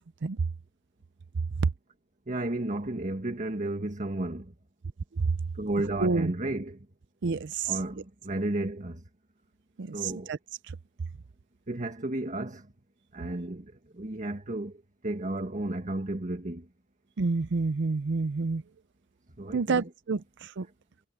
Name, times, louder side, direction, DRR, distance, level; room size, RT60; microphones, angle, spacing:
voice 1, 2.3-4.5 5.5-6.8 7.7-9.0 9.9-10.3 11.7-12.6 13.1-14.8 15.0-16.6 19.4-19.9, right 2 dB, 40° right, 1.6 m, -33 dB
voice 2, 6.0-6.3 7.2-7.7 9.8-10.4 17.2-18.6 19.5-20.2 20.6-20.7, right 4 dB, 60° right, 0.6 m, -28 dB
head